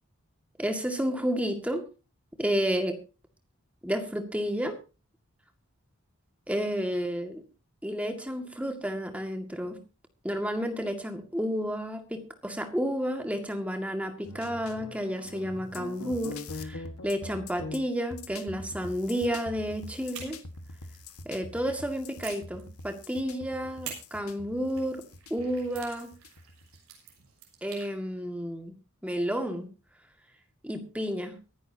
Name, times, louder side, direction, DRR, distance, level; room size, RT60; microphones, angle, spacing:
voice 1, 0.6-1.8 2.4-3.0 3.8-4.8 6.5-7.4 7.8-9.8 10.2-20.4 21.3-25.0 25.3-26.1 27.6-28.7 29.0-29.7 30.6-31.3, equal, 5° right, 6 dB, 2.0 m, -31 dB
sound 1, 14.2-26.8, left 2 dB, 85° left, 1.7 m, -43 dB
sound 2, 20.1-21.7 22.2-23.2 23.8-27.9, right 7 dB, 75° right, 6.6 m, -47 dB
23.5 x 11.0 x 2.8 m, 0.32 s
head